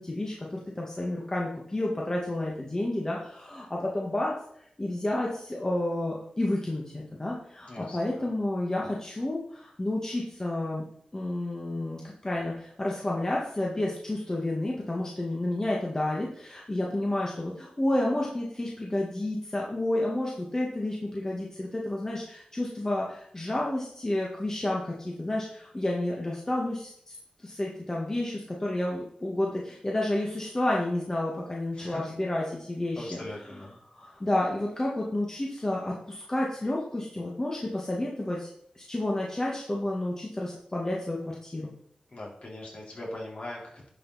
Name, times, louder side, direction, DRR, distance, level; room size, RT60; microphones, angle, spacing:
voice 1, 0.0-4.4 4.8-10.8 11.1-27.2 27.4-33.2 33.9-38.5 38.7-41.7, left 1 dB, 25° left, -2 dB, 1.6 m, -30 dB
voice 2, 7.7-8.3 31.7-32.2 33.0-33.8 42.1-43.9, left 1 dB, 50° left, -4 dB, 3.8 m, -40 dB
11.0 x 5.8 x 4.1 m, 0.65 s
wide cardioid pair, 90°, 3 cm